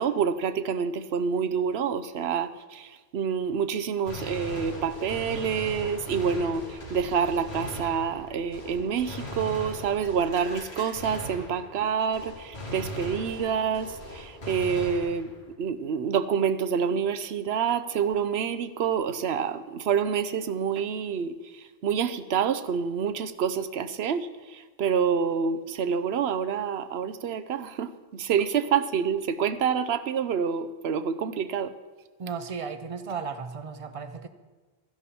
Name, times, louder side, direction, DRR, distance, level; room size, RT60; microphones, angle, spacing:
voice 1, 0.0-15.3 15.6-21.4 21.8-31.7, right 7 dB, 80° right, 12 dB, 0.9 m, -27 dB
Gunshot gunfire, 4.1-11.9 12.1-15.5, left 1 dB, 80° left, 3.2 m, -39 dB
voice 2, 32.2-34.3, right 5 dB, 35° right, 10 dB, 0.7 m, -35 dB
13.0 x 11.0 x 4.3 m, 1.3 s
omnidirectional pair, 1.1 m